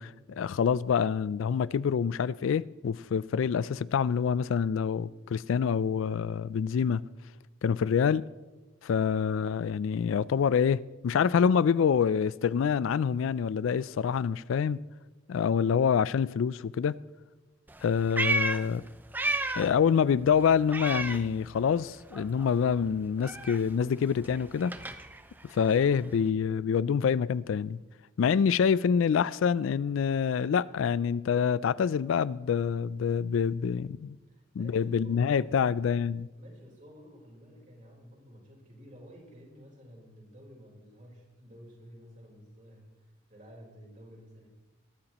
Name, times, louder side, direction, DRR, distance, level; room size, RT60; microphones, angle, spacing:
voice 1, 0.0-7.0 7.6-8.3 8.8-14.8 15.3-17.0 17.8-18.8 19.6-24.7 25.4-27.8 28.2-34.2 34.6-36.3, left 7 dB, 75° left, 0.3 m, -26 dB
Meow, 17.7-19.8 20.1-21.9 22.1-26.3, right 2 dB, 10° right, 0.5 m, -34 dB
voice 2, 34.3-35.7 36.4-44.5, equal, 40° right, 4.2 m, -52 dB
22.0 x 12.5 x 3.0 m
head